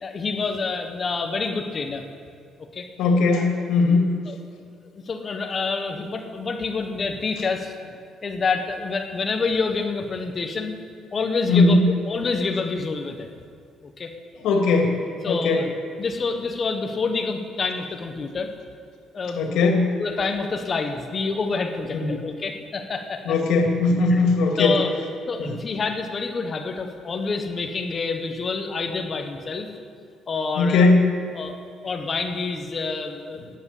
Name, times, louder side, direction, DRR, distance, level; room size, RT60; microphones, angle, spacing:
voice 1, 0.0-2.0 2.7-2.9 3.4-3.7 4.3-4.4 5.1-7.7 8.2-10.7 11.1-11.8 12.1-13.3 13.8-14.1 15.2-15.7 16.0-18.5 19.1-19.4 20.0-23.3 24.1-24.2 24.6-24.9 25.3-29.7 30.3-30.9 31.3-33.6, left 4 dB, 30° left, 5 dB, 1.3 m, -27 dB
voice 2, 3.0-4.2 11.5-11.9 14.4-15.0 15.2-15.6 19.4-20.0 21.9-22.2 23.2-24.8 25.4-25.5 30.6-31.1, left 3 dB, 85° left, 2 dB, 2.7 m, -19 dB
12.5 x 10.0 x 8.4 m, 2.2 s
cardioid pair, 145°, 0 cm